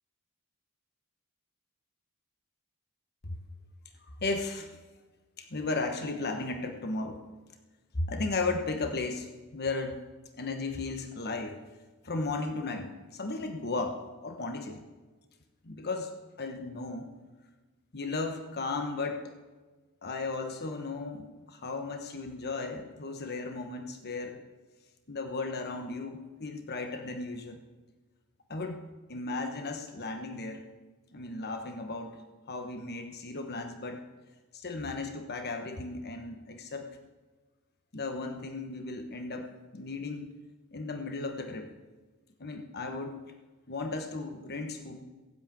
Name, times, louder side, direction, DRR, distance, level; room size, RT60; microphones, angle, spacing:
voice 1, 4.2-4.7 5.4-7.2 7.9-10.0 10.4-11.6 12.0-14.8 15.6-16.1 16.4-17.1 17.9-19.3 20.0-24.4 25.1-27.6 28.5-28.8 29.1-30.6 31.1-32.2 32.5-34.0 34.5-36.9 37.9-40.3 40.7-41.7 42.4-43.2 43.7-45.0, left 3 dB, 50° left, 6 dB, 1.2 m, -35 dB
16.5 x 7.7 x 9.0 m, 1.3 s
head